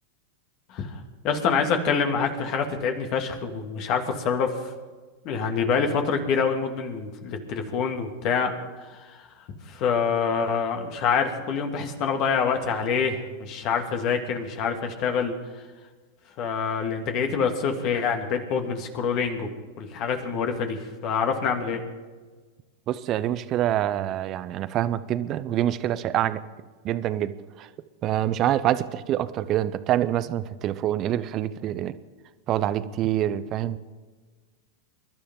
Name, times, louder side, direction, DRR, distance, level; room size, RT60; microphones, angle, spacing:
voice 1, 1.2-4.5 5.2-8.5 9.7-15.3 16.4-19.5 19.8-21.8, left 6 dB, 45° left, 4 dB, 2.3 m, -26 dB
voice 2, 22.9-26.4 26.8-27.3 27.6-27.7 28.0-31.9 32.5-33.8, right 12 dB, 40° right, 14 dB, 0.8 m, -26 dB
24.5 x 12.0 x 3.8 m, 1.4 s
hypercardioid pair, 100°, 0 cm